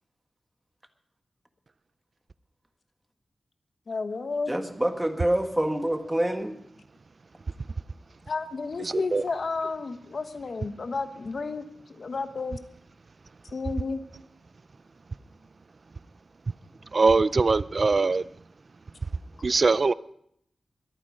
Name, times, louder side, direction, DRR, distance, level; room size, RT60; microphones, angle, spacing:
voice 1, 3.9-4.5 8.3-12.6 13.5-14.0, left 4 dB, 65° left, 1.3 m, -32 dB
voice 2, 4.5-6.6, right 1 dB, 15° right, 1.6 m, -26 dB
voice 3, 8.8-9.2 16.9-18.3 19.4-19.9, right 4 dB, 50° right, 0.4 m, -22 dB
22.5 x 9.0 x 5.1 m
wide cardioid pair, 85°, 0 cm